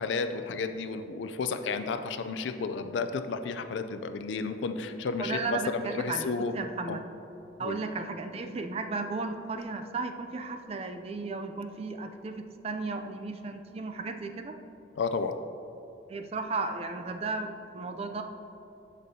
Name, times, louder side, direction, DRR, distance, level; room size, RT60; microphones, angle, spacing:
voice 1, 0.0-6.5 6.9-7.0 7.6-7.8 15.0-15.4, left 4 dB, 80° left, 9 dB, 0.4 m, -32 dB
voice 2, 5.2-7.0 7.6-14.6 16.1-18.2, right 3 dB, 35° right, 6 dB, 0.4 m, -35 dB
13.5 x 5.2 x 2.7 m, 3.0 s
head